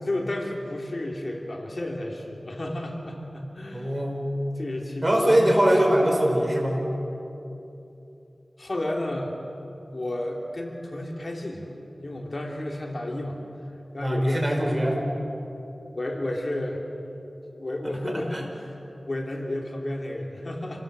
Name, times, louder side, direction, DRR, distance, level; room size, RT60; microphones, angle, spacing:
voice 1, 0.0-4.0 4.6-5.6 8.6-9.4 9.9-11.7 12.0-13.4 13.9-14.8 16.0-16.8 17.5-18.8 19.1-20.8, left 1 dB, 50° left, 0 dB, 3.1 m, -32 dB
voice 2, 3.7-4.3 5.0-6.8 14.0-15.0 18.3-18.4, right 1 dB, 30° right, 1 dB, 5.3 m, -22 dB
28.5 x 19.5 x 7.7 m, 2.9 s
wide cardioid pair, 65°, 0 cm